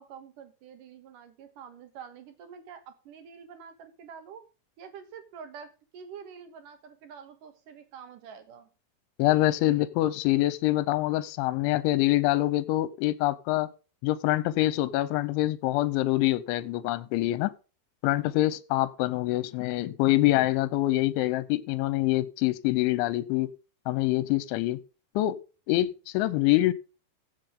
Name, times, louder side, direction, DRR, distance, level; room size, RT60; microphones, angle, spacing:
voice 1, 0.0-4.4 4.8-8.7, right 7 dB, 65° right, 2.3 m, -47 dB
voice 2, 9.2-13.7 14.0-17.5 18.0-23.5 23.9-24.8 25.2-25.4 25.7-26.7, left 16 dB, 85° left, 3.1 m, -25 dB
15.5 x 7.2 x 3.8 m
omnidirectional pair, 5.4 m